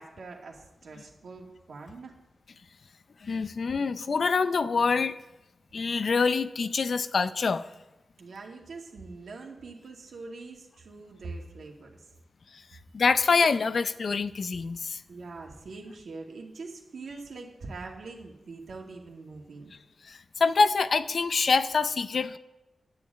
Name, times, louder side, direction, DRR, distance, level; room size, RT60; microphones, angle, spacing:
voice 1, 0.0-2.1 8.2-11.9 15.1-19.7, right 3 dB, 75° right, 1 dB, 2.3 m, -43 dB
voice 2, 3.2-5.2 5.7-7.7 12.5-12.6 12.9-15.0 20.0-22.4, left 4 dB, 60° left, 12 dB, 0.6 m, -25 dB
10.5 x 7.8 x 8.7 m, 1.0 s
wide cardioid pair, 95°, 0 cm